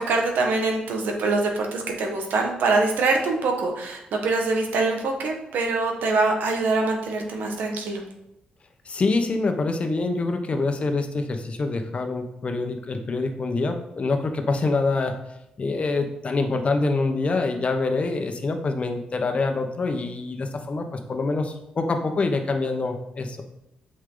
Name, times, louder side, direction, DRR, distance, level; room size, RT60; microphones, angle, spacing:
voice 1, 0.0-8.0, right 3 dB, 80° right, 2 dB, 1.5 m, -24 dB
voice 2, 8.9-15.2 15.6-23.4, left 3 dB, 45° left, 5 dB, 1.1 m, -25 dB
8.3 x 5.5 x 3.9 m, 0.85 s
cardioid pair, 80°, 3 cm